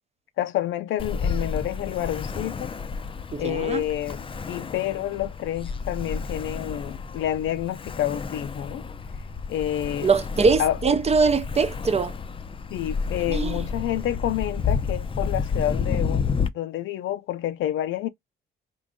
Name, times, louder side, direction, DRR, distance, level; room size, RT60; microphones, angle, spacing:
voice 1, 0.4-2.7 3.4-8.9 9.5-10.1 10.6-10.8 12.7-18.1, left 12 dB, 80° left, 0.5 m, -28 dB
Ocean, 1.0-16.5, left 5 dB, 25° left, 0.5 m, -30 dB
voice 2, 3.3-3.8 10.0-12.1 13.3-13.6, right 4 dB, 30° right, 0.6 m, -22 dB
3.8 x 2.6 x 3.6 m
cardioid pair, 90°, 20 cm